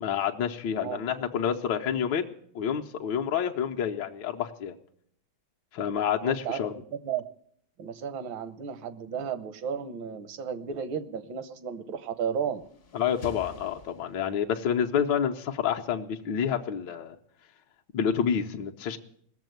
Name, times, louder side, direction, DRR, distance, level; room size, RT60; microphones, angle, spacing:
voice 1, 0.0-4.7 5.7-6.7 12.9-17.1 17.9-19.0, left 8 dB, 65° left, 2 dB, 1.5 m, -28 dB
voice 2, 6.2-6.6 6.9-7.2 7.8-12.6, right 7 dB, 75° right, 12 dB, 1.7 m, -33 dB
sound 1, 12.2-14.6, left 2 dB, 45° left, 0.9 m, -48 dB
18.0 x 7.2 x 9.2 m, 0.67 s
omnidirectional pair, 2.2 m